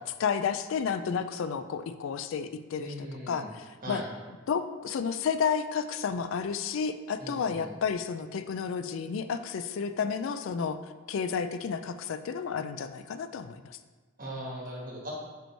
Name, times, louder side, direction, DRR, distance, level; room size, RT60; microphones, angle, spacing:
voice 1, 0.2-2.9 3.3-4.0 4.5-10.8 11.1-13.8, left 6 dB, 65° left, 11 dB, 0.3 m, -31 dB
voice 2, 2.8-3.5 3.8-4.1 7.2-7.7 14.2-15.1, equal, 40° right, -3 dB, 1.6 m, -39 dB
5.3 x 4.5 x 4.5 m, 1.3 s
head